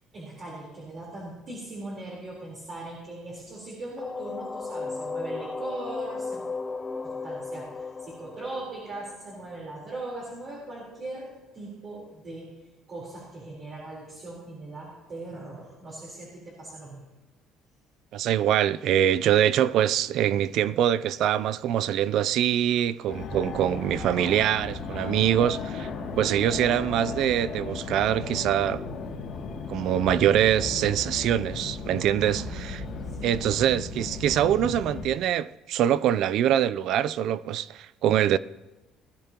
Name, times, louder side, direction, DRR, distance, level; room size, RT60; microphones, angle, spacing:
voice 1, 0.1-6.4 7.0-12.6 12.9-17.0 32.2-33.6, right 2 dB, 35° right, 4.0 m, -40 dB
sound 1, 4.0-9.7, left 4 dB, 15° left, 0.6 m, -35 dB
voice 2, 18.1-25.9 26.2-28.8 29.7-32.8 33.2-38.4, right 10 dB, 55° right, 0.4 m, -24 dB
Fixed-wing aircraft airplane, 23.1-35.1, left 4 dB, 45° left, 2.5 m, -35 dB
20.0 x 13.5 x 3.0 m
cardioid pair, 165°, 0 cm